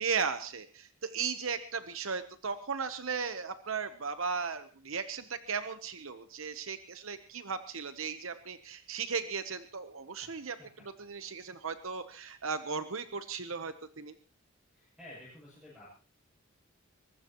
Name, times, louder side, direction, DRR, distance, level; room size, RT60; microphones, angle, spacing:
voice 1, 0.0-14.1, right 5 dB, 65° right, 10 dB, 1.0 m, -36 dB
voice 2, 14.7-15.9, left 1 dB, 5° right, -7 dB, 7.9 m, -51 dB
22.5 x 20.0 x 3.1 m, 0.37 s
head